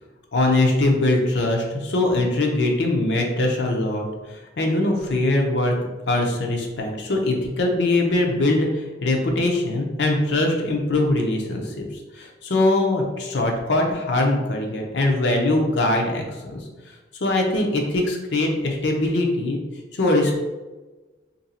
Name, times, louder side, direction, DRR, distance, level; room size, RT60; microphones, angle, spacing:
voice 1, 0.3-5.7 6.1-11.8 12.1-16.6 17.2-19.6 19.9-20.4, left 2 dB, 65° left, 1 dB, 0.6 m, -22 dB
2.9 x 2.6 x 4.1 m, 1.2 s
head